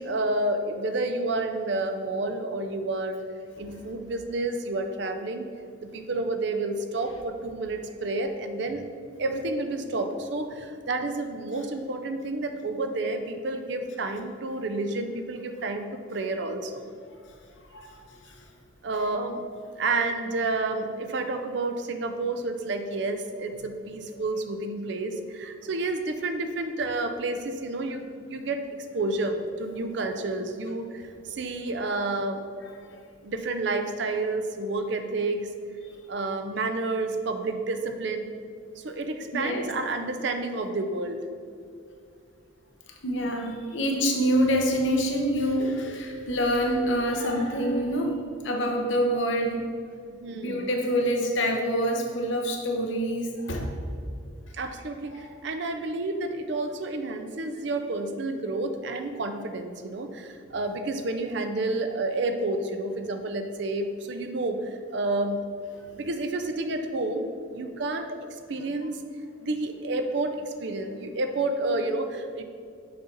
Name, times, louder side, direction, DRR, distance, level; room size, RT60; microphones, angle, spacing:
voice 1, 0.0-3.2 3.6-5.5 5.8-8.8 9.2-16.8 18.8-19.4 19.8-28.6 28.9-32.4 33.2-35.5 36.1-38.3 38.8-41.2 50.1-50.7 54.5-65.4 66.0-69.0 69.4-72.4, right 2 dB, 55° right, 7 dB, 0.5 m, -30 dB
voice 2, 17.7-18.4 18.9-19.1 24.1-24.2 32.6-33.0 39.3-39.7 43.0-49.6 50.4-53.7 55.1-55.2, equal, 65° left, 1 dB, 0.9 m, -26 dB
6.6 x 4.2 x 3.9 m, 2.4 s
head